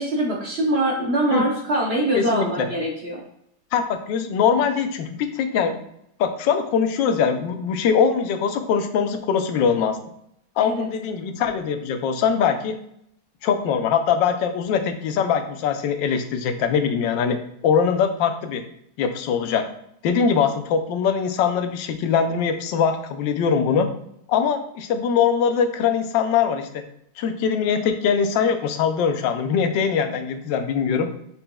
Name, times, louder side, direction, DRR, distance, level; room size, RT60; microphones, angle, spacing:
voice 1, 0.0-3.2 10.6-10.9, right 1 dB, 55° right, -3 dB, 0.7 m, -23 dB
voice 2, 2.1-2.7 3.7-5.8 6.2-10.0 10.6-12.8 13.4-17.4 17.6-18.6 19.0-19.6 20.0-23.9 24.3-26.8 27.2-31.1, left 6 dB, 90° left, 7 dB, 1.3 m, -22 dB
5.3 x 4.3 x 2.2 m, 0.74 s
omnidirectional pair, 1.9 m